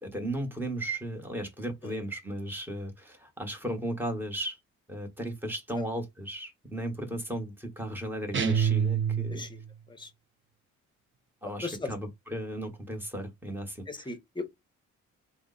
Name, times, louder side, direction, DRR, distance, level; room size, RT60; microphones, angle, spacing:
voice 1, 0.0-4.6 4.9-9.4 11.4-14.1, right 1 dB, 5° right, 1.2 m, -35 dB
sound 1, 8.3-9.7, right 7 dB, 40° right, 0.7 m, -27 dB
voice 2, 11.4-11.9 13.9-14.7, left 3 dB, 15° left, 0.9 m, -38 dB
3.2 x 2.1 x 3.8 m
cardioid pair, 90°, 30 cm